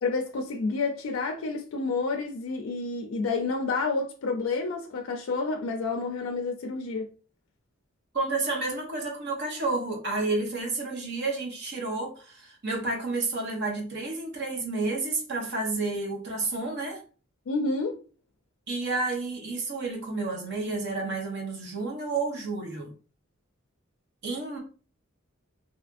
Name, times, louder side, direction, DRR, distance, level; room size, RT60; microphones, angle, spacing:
voice 1, 0.0-7.1 17.5-18.0, left 3 dB, 90° left, 0.4 m, -29 dB
voice 2, 8.1-17.0 18.7-22.9 24.2-24.6, right 3 dB, 60° right, 0.9 m, -30 dB
2.7 x 2.4 x 2.4 m
head